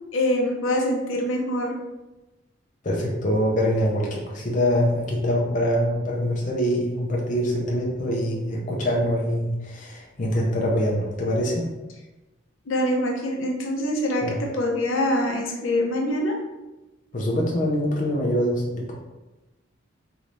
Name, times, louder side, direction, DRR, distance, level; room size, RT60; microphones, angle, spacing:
voice 1, 0.1-1.7 12.7-16.3, left 1 dB, 80° left, 0 dB, 0.6 m, -24 dB
voice 2, 2.8-11.7 14.2-14.4 17.1-18.9, equal, 40° left, -2 dB, 0.5 m, -24 dB
3.1 x 3.1 x 2.6 m, 1.1 s
head